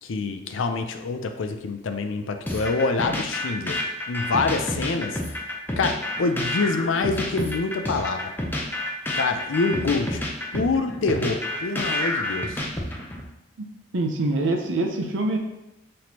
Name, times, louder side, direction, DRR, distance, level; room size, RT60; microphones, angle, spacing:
voice 1, 0.0-3.8 4.1-8.3 9.1-10.2 10.5-12.6, left 3 dB, 80° left, 6 dB, 0.5 m, -26 dB
sound 1, 2.5-13.2, left 1 dB, 10° left, 0.5 m, -29 dB
voice 2, 13.9-15.4, right 2 dB, 70° right, 2 dB, 0.7 m, -24 dB
5.9 x 3.2 x 2.8 m, 0.95 s
head